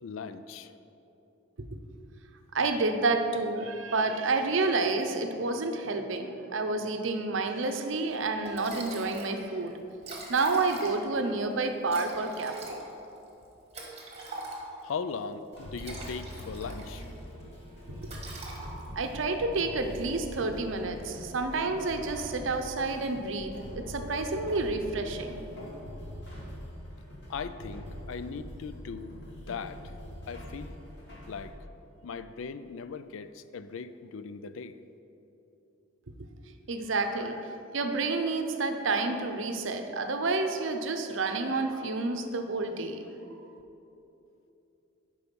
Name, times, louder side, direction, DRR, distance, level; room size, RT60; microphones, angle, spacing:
voice 1, 0.0-0.7 14.8-17.0 27.3-29.8 30.3-30.8 31.3-31.6 32.0-34.8, left 5 dB, 70° left, 12 dB, 0.4 m, -39 dB
voice 2, 2.5-9.8 10.3-12.8 18.0-18.1 18.9-25.4 36.7-43.0, right 3 dB, 65° right, 6 dB, 0.7 m, -29 dB
Liquid, 8.1-8.2 8.5-9.4 9.7-9.8 9.9-11.2 11.9-14.9 15.6-17.1 17.4-17.7 18.0-19.1, right 2 dB, 30° right, 1.4 m, -43 dB
sound 1, 15.5-31.5, equal, 55° left, 2.1 m, -43 dB
11.0 x 4.8 x 5.3 m, 2.9 s
head